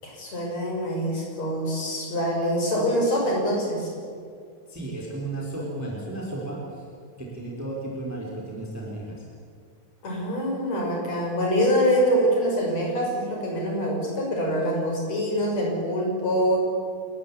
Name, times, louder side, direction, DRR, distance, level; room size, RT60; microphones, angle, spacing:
voice 1, 0.0-3.9 10.0-16.6, equal, 55° left, -1 dB, 7.2 m, -25 dB
voice 2, 4.7-6.8 7.2-9.2, right 2 dB, 5° right, -2 dB, 3.9 m, -34 dB
28.0 x 14.5 x 9.7 m, 2.2 s
omnidirectional pair, 3.6 m